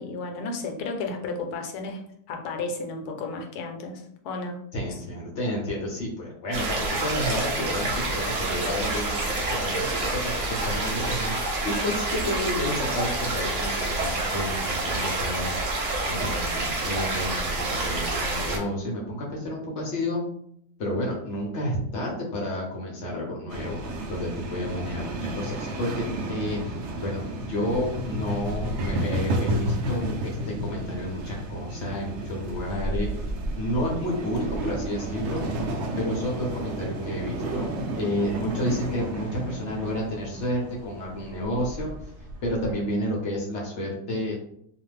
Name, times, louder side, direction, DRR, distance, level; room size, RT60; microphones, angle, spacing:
voice 1, 0.0-2.0 2.3-4.6 4.9-5.0, left 3 dB, 80° left, 3 dB, 1.1 m, -33 dB
voice 2, 4.7-15.5 16.0-20.2 20.8-26.6 27.0-33.1 33.6-35.4 36.0-37.7 38.0-41.9 42.4-44.4, left 1 dB, 60° left, -2 dB, 0.8 m, -30 dB
sound 1, 6.5-18.6, right 2 dB, 55° right, 1.0 m, -28 dB
sound 2, 23.5-42.7, right 1 dB, 75° right, 0.6 m, -32 dB
2.5 x 2.4 x 3.2 m, 0.70 s
omnidirectional pair, 1.7 m